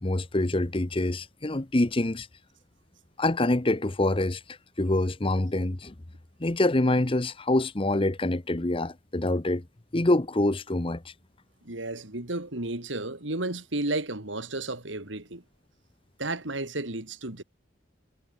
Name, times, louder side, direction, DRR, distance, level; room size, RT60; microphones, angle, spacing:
voice 1, 0.0-2.3 3.2-4.4 4.8-5.9 6.4-9.6 9.9-11.0, left 1 dB, 30° left, 0.9 m, -25 dB
voice 2, 11.6-15.4 16.2-17.4, right 2 dB, 80° right, 3.3 m, -32 dB
head